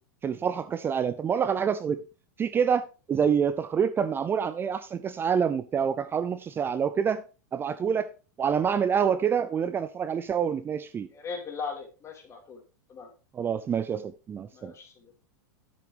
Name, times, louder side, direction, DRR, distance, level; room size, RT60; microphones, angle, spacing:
voice 1, 0.2-2.0 2.4-2.8 3.1-7.2 7.5-8.1 8.4-11.1 13.3-14.7, right 7 dB, 20° right, 0.4 m, -27 dB
voice 2, 11.1-12.6 12.9-13.1 14.5-15.2, left 5 dB, 25° left, 2.7 m, -39 dB
9.3 x 7.6 x 3.4 m
hypercardioid pair, 105°, 10 cm